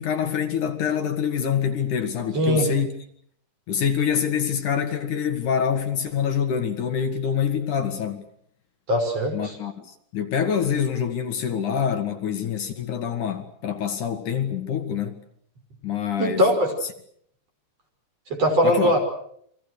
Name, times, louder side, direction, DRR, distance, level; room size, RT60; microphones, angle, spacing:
voice 1, 0.0-2.9 3.7-8.2 9.3-9.7 10.1-15.2 15.8-16.4 18.6-18.9, left 8 dB, 65° left, 3.2 m, -25 dB
voice 2, 2.3-2.7 8.9-9.6 16.2-16.7 18.3-19.0, equal, 45° right, 6.8 m, -21 dB
30.0 x 24.0 x 6.6 m
omnidirectional pair, 4.1 m